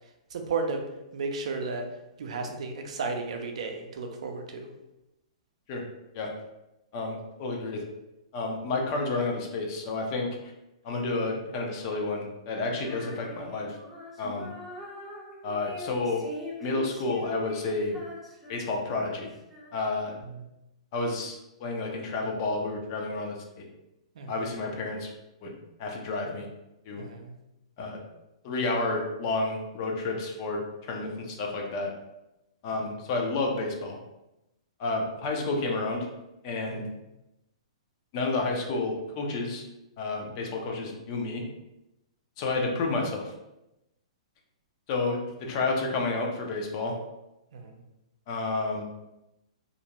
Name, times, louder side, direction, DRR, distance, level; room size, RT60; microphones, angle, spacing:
voice 1, 0.3-0.8 1.1-1.9 2.2-4.7 24.2-24.3 27.0-27.3 36.7-36.9 47.5-47.8, right 4 dB, 70° right, 4 dB, 0.4 m, -33 dB
voice 2, 6.9-7.8 8.3-10.4 10.8-13.8 14.2-14.5 15.4-16.2 16.6-18.0 18.5-19.3 19.7-20.1 20.9-23.7 24.3-25.1 25.4-25.5 25.8-26.5 26.9-27.0 27.8-28.0 28.4-31.9 32.6-34.0 34.8-36.1 36.4-36.8 38.1-39.6 40.0-41.5 42.4-43.3 44.9-47.0 48.3-48.9, left 3 dB, 40° left, 1 dB, 0.5 m, -30 dB
Female singing, 12.7-20.1, left 1 dB, 5° right, 0.6 m, -43 dB
2.5 x 2.1 x 2.8 m, 0.91 s
hypercardioid pair, 150°, 4 cm